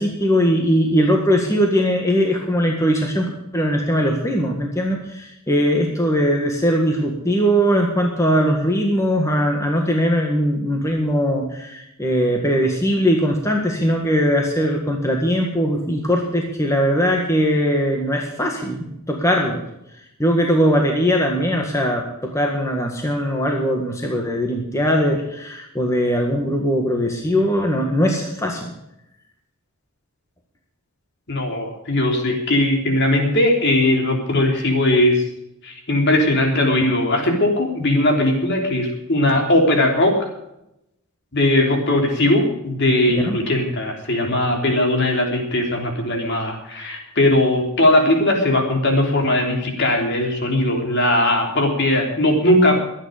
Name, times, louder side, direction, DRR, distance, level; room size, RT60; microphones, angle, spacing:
voice 1, 0.0-19.6 20.2-28.7 43.1-43.4, equal, 15° left, 1 dB, 1.7 m, -20 dB
voice 2, 31.3-35.2 35.6-40.3 41.3-52.8, left 1 dB, 50° left, 2 dB, 3.3 m, -19 dB
23.0 x 9.2 x 5.1 m, 0.83 s
head